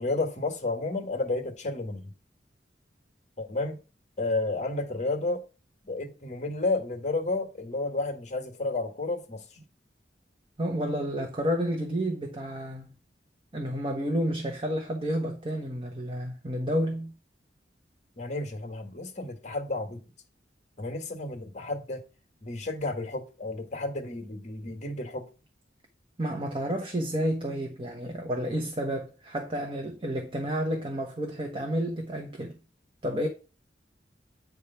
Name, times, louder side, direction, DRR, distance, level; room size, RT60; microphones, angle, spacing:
voice 1, 0.0-2.1 3.4-3.8 4.2-5.4 5.8-9.6 18.2-20.0 20.8-22.0 22.4-25.3, left 2 dB, 40° left, 1.7 m, -31 dB
voice 2, 10.6-12.9 13.5-17.1 26.2-32.6 33.0-33.3, equal, 30° right, 1.1 m, -30 dB
9.1 x 3.4 x 5.7 m
head